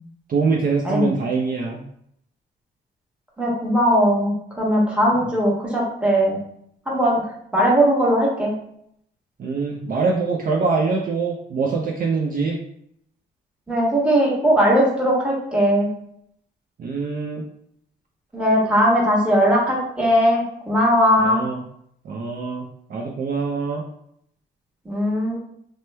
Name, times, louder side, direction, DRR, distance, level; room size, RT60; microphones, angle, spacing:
voice 1, 0.3-1.8 9.4-12.6 16.8-17.4 21.2-21.6 22.0-22.6 22.9-23.8, right 4 dB, 45° right, -1 dB, 0.5 m, -24 dB
voice 2, 3.4-6.4 6.9-7.2 7.5-8.5 13.7-15.9 18.3-21.4 24.8-25.4, equal, 5° right, -4 dB, 1.1 m, -19 dB
2.9 x 2.1 x 3.2 m, 0.71 s
cardioid pair, 90°, 20 cm